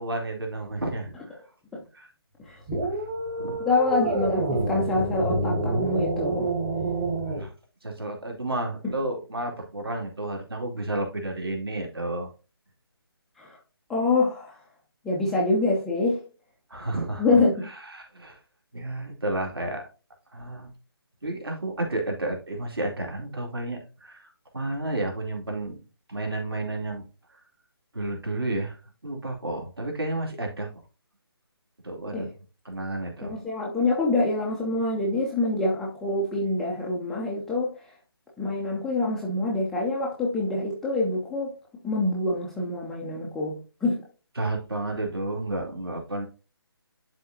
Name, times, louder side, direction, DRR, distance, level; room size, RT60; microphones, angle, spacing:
voice 1, 0.0-1.4 1.9-2.1 3.4-3.6 7.2-7.5 7.8-12.3 16.7-17.2 17.9-18.4 18.7-19.8 20.3-20.7 21.2-25.8 26.1-27.1 27.9-28.8 29.0-30.7 31.8-32.3 32.6-33.4 44.4-46.2, right 2 dB, 70° right, 2.6 m, -31 dB
voice 2, 2.4-2.8 3.6-6.5 8.8-8.9 13.4-13.6 13.9-14.6 15.0-16.2 17.2-17.6 32.1-32.3 33.2-37.7 38.4-41.5 41.8-44.0, left 2 dB, ahead, 0.4 m, -26 dB
sound 1, 2.7-7.5, right 2 dB, 25° right, 1.1 m, -28 dB
11.0 x 3.9 x 2.7 m
figure-of-eight pair, 150°, 13 cm